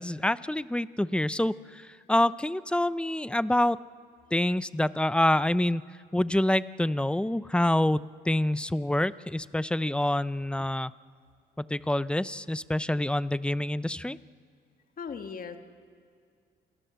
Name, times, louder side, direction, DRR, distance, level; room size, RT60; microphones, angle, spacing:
voice 1, 0.0-3.8 4.3-5.8 6.1-10.9 11.6-14.2, left 1 dB, 5° left, 16 dB, 0.5 m, -27 dB
voice 2, 15.0-15.6, left 6 dB, 45° left, 6 dB, 1.7 m, -37 dB
28.0 x 19.5 x 6.9 m, 2.3 s
cardioid pair, 90°, 20 cm